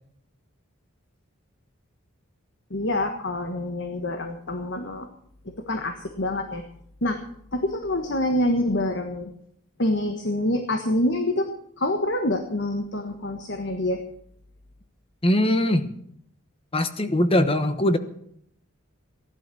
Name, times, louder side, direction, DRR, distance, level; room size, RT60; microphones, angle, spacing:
voice 1, 2.7-5.1 5.4-6.6 7.0-7.2 7.5-9.3 9.8-11.5 11.8-14.0, left 1 dB, 55° left, 5 dB, 1.4 m, -26 dB
voice 2, 15.2-15.9 16.7-18.0, left 1 dB, 25° left, 10 dB, 1.1 m, -21 dB
15.5 x 11.5 x 6.3 m, 0.68 s
head